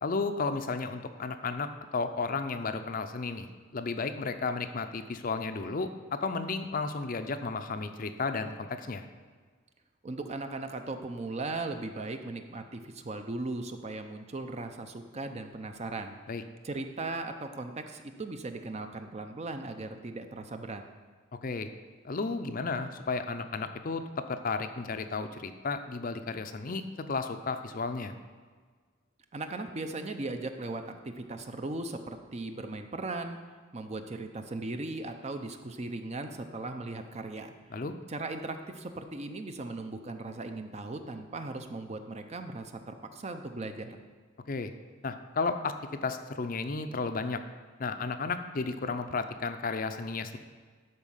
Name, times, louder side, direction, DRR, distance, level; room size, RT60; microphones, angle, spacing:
voice 1, 0.0-3.5 3.7-9.1 16.3-16.4 21.4-21.7 22.0-28.1 37.7-37.9 44.5-44.7 45.0-45.7 46.0-47.4 47.8-50.4, left 4 dB, 45° left, 8 dB, 0.5 m, -33 dB
voice 2, 10.0-16.2 16.6-20.8 29.3-33.4 33.7-37.5 38.1-44.0, right 2 dB, 35° right, 7 dB, 0.6 m, -38 dB
12.0 x 4.4 x 5.6 m, 1.5 s
head